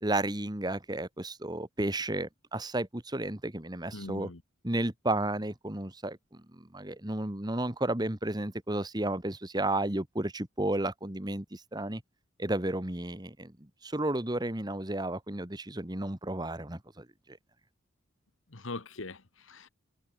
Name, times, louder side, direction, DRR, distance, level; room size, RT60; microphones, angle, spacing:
voice 1, 0.0-4.3 4.6-12.0 12.4-17.4, right 1 dB, 20° right, 1.5 m, -33 dB
voice 2, 3.9-4.4 18.5-19.7, left 2 dB, 80° left, 1.6 m, -41 dB
head